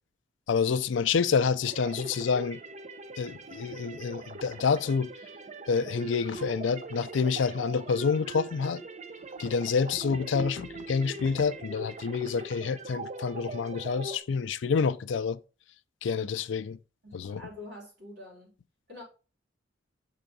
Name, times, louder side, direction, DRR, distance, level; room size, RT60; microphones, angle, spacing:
voice 1, 0.5-2.6 3.2-5.1 5.7-8.8 9.4-15.4 16.0-16.8 17.1-17.4, left 5 dB, 75° left, 0.4 m, -28 dB
sound 1, 1.6-14.2, right 3 dB, 40° right, 0.6 m, -42 dB
voice 2, 17.0-18.5 18.9-19.0, left 1 dB, 60° right, 3.9 m, -46 dB
5.6 x 3.7 x 5.2 m
head